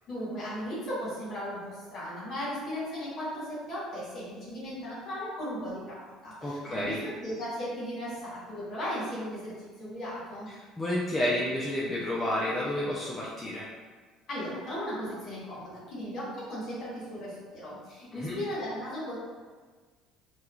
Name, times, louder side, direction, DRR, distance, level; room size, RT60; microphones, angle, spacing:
voice 1, 0.1-10.5 14.3-19.1, equal, 50° left, -7 dB, 1.5 m, -36 dB
voice 2, 6.4-7.0 10.8-13.7 18.1-18.4, left 1 dB, 20° left, -6 dB, 0.5 m, -30 dB
2.9 x 2.3 x 2.4 m, 1.4 s
hypercardioid pair, 60°, 0 cm